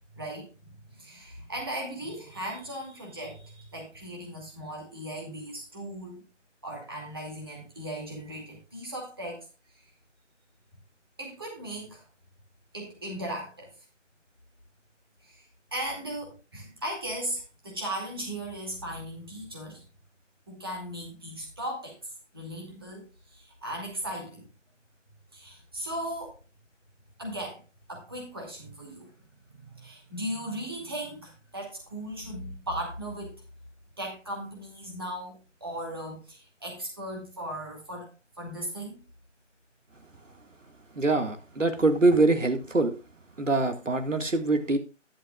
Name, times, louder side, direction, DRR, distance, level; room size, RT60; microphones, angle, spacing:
voice 1, 0.1-6.2 6.6-9.4 9.7-9.9 11.2-12.0 12.7-13.8 15.2-19.8 20.5-24.5 25.3-26.4 27.2-27.6 27.9-29.1 29.5-33.3 34.0-38.1 38.4-39.0, right 1 dB, 20° right, -1 dB, 2.5 m, -37 dB
voice 2, 41.0-42.9 43.4-44.8, right 2 dB, 80° right, 7 dB, 1.9 m, -24 dB
11.5 x 11.0 x 2.3 m, 0.31 s
figure-of-eight pair, 175°, 37 cm